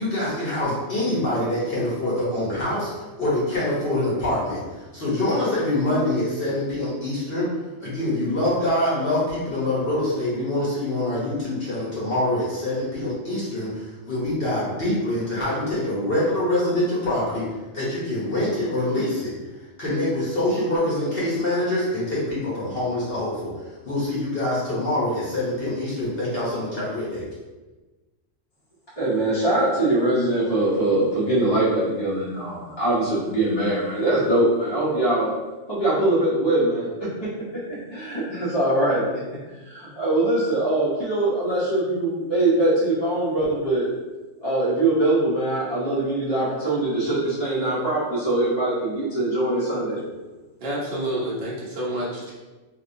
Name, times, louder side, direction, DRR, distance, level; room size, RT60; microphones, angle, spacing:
voice 1, 0.0-4.6 4.9-7.5 7.8-17.5 17.7-19.3 19.8-23.5 23.8-27.2, left 1 dB, 50° left, -8 dB, 1.0 m, -25 dB
voice 2, 29.0-35.3 35.7-36.9 37.9-43.9 44.4-50.0, right 1 dB, 25° left, -9 dB, 0.8 m, -22 dB
voice 3, 50.6-52.3, right 1 dB, 55° right, -6 dB, 0.9 m, -28 dB
3.3 x 2.7 x 2.6 m, 1.2 s
omnidirectional pair, 1.3 m